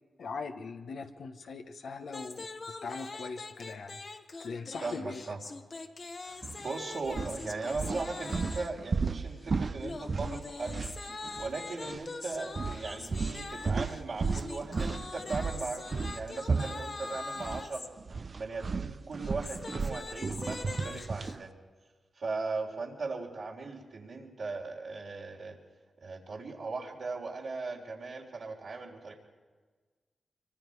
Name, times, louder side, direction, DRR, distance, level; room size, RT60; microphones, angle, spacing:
voice 1, 0.2-2.5 2.8-5.2 8.3-8.5, left 4 dB, 75° left, 5 dB, 1.2 m, -41 dB
sound 1, 2.1-8.8 9.8-17.9 19.1-21.4, left 3 dB, 55° left, 1.5 m, -43 dB
voice 2, 4.8-5.4 6.2-10.8 11.4-17.9 18.4-21.5 22.2-25.6 26.0-29.1, right 3 dB, 75° right, -3 dB, 3.7 m, -38 dB
sound 2, 6.4-6.6 7.1-11.5 11.8-12.0 12.5-17.7 18.0-21.4, right 4 dB, 55° right, 0.6 m, -34 dB
25.0 x 23.5 x 4.8 m, 1.4 s
supercardioid pair, 40°, 0 cm